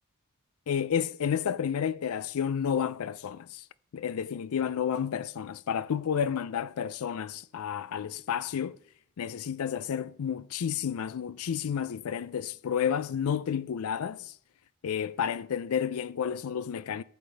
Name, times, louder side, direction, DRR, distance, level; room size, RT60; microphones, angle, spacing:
voice 1, 0.7-3.6 3.9-8.8 9.2-14.3 14.8-17.0, left 8 dB, 70° left, 0.4 m, -31 dB
15.0 x 6.6 x 3.3 m
head